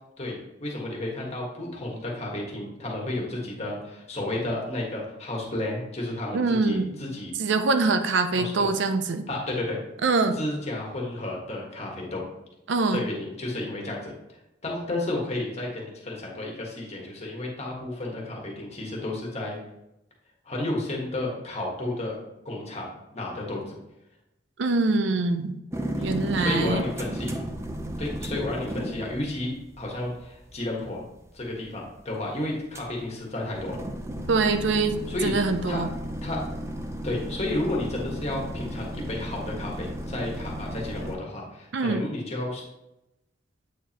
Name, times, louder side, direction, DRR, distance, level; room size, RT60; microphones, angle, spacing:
voice 1, 0.2-7.3 8.4-8.7 9.3-9.8 10.3-12.2 12.9-14.1 14.6-19.6 20.4-22.2 22.4-23.8 26.0-26.1 26.4-27.4 28.0-31.0 31.3-33.8 35.1-35.3 35.7-35.8 36.2-36.4 37.0-42.6, left 1 dB, 35° left, -2 dB, 1.5 m, -32 dB
voice 2, 6.3-7.0 7.4-9.3 10.0-10.4 12.7-13.0 24.6-25.6 26.0-26.8 34.3-35.0 35.2-35.9 41.7-42.0, right 3 dB, 70° right, 8 dB, 0.5 m, -24 dB
sound 1, 25.7-41.2, right 1 dB, 15° right, 0.6 m, -34 dB
8.1 x 4.7 x 2.9 m, 0.90 s
head